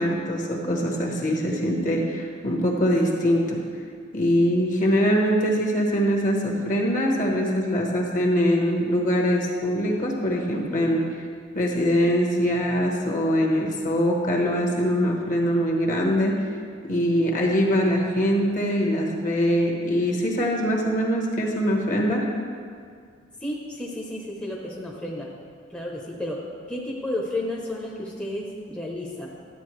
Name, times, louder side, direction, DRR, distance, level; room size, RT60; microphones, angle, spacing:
voice 1, 0.0-3.6 4.1-11.1 11.5-16.4 16.8-22.2, equal, 45° left, -1 dB, 1.3 m, -23 dB
voice 2, 23.4-25.3 25.7-26.4 26.7-29.3, left 1 dB, 5° left, -4 dB, 0.8 m, -32 dB
11.5 x 8.2 x 3.2 m, 2.1 s
head